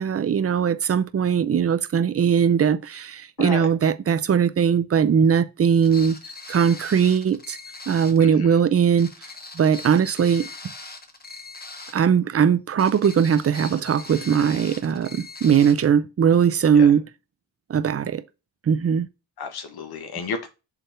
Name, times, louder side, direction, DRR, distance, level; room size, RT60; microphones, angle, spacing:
voice 1, 0.0-6.2 6.5-7.6 7.9-9.1 9.5-10.5 11.9-17.0 17.7-18.2 18.7-19.1, right 7 dB, 35° right, 0.7 m, -20 dB
voice 2, 3.4-3.7 8.2-8.6 16.7-16.9 19.4-20.5, left 5 dB, 60° left, 1.7 m, -32 dB
sound 1, 5.8-8.3 9.0-12.1 12.8-15.9, left 3 dB, 20° left, 1.6 m, -40 dB
5.7 x 3.5 x 5.6 m
cardioid pair, 70°, 43 cm